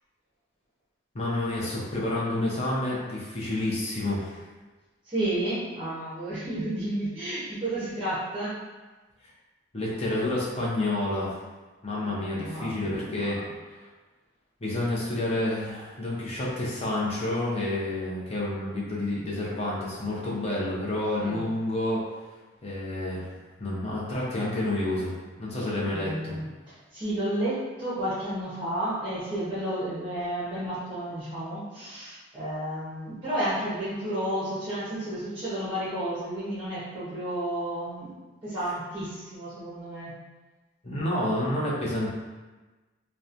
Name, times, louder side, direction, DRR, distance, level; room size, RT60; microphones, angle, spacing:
voice 1, 1.1-4.4 9.7-11.4 11.8-13.4 13.7-13.8 14.6-22.0 22.6-23.3 23.6-26.3 40.8-42.1, left 1 dB, 30° left, -6 dB, 0.6 m, -29 dB
voice 2, 5.0-8.5 12.0-13.5 21.2-21.5 25.5-38.1 38.4-40.1, right 1 dB, 25° right, -10 dB, 0.6 m, -32 dB
2.9 x 2.1 x 2.4 m, 1.2 s
head